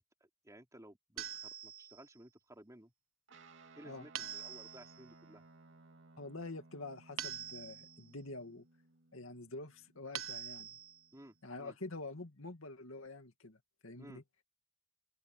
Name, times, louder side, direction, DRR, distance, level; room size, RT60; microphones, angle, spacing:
voice 1, 0.2-2.9 3.7-5.4 11.1-11.7 14.0-14.2, right 1 dB, 15° right, 4.2 m, -57 dB
sound 1, 1.2-2.1 4.2-5.0 7.2-8.1 10.1-11.1, right 10 dB, 85° right, 1.5 m, -44 dB
Guitar, 3.3-12.0, right 3 dB, 65° right, 2.7 m, -62 dB
voice 2, 6.2-8.6 9.1-10.8 11.4-14.2, left 2 dB, 70° left, 2.5 m, -47 dB
open air
head